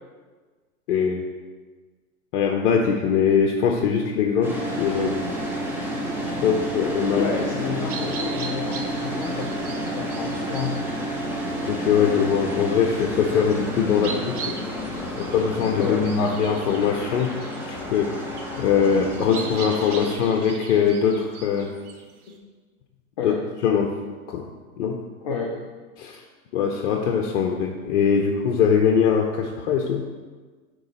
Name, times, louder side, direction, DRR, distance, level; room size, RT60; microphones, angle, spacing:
voice 1, 0.9-1.2 2.3-5.3 6.4-7.3 7.7-7.8 11.7-14.9 15.2-21.7 23.2-23.4 23.6-24.0 24.3-24.5 24.8-25.0 26.0-26.2 26.5-30.1, left 7 dB, 55° left, 2 dB, 0.7 m, -22 dB
sound 1, 4.4-20.1, equal, 5° right, 0.6 m, -30 dB
voice 2, 7.2-10.8 15.8-16.0 20.0-20.1 23.2-23.4 25.2-25.5, left 6 dB, 25° left, 0 dB, 0.3 m, -30 dB
sound 2, 7.9-22.4, right 5 dB, 75° right, 1.0 m, -40 dB
7.7 x 3.1 x 4.0 m, 1.4 s
hypercardioid pair, 125°, 44 cm